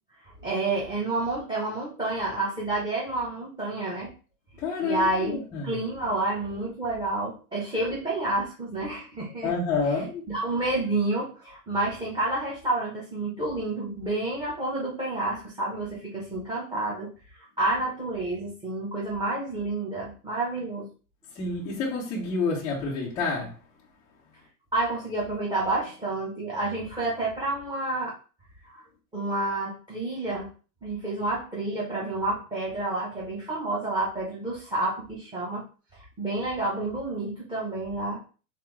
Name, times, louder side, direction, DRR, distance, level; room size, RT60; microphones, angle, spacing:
voice 1, 0.4-4.1 4.8-9.5 10.3-17.1 17.6-20.9 24.7-28.1 28.7-28.8 29.1-30.5 30.8-35.6 35.9-38.2, right 2 dB, 10° right, 0.8 m, -29 dB
voice 2, 4.6-5.8 9.4-10.2 21.4-23.6, left 4 dB, 10° left, 0.3 m, -28 dB
3.5 x 3.4 x 3.1 m
supercardioid pair, 140°, 45 cm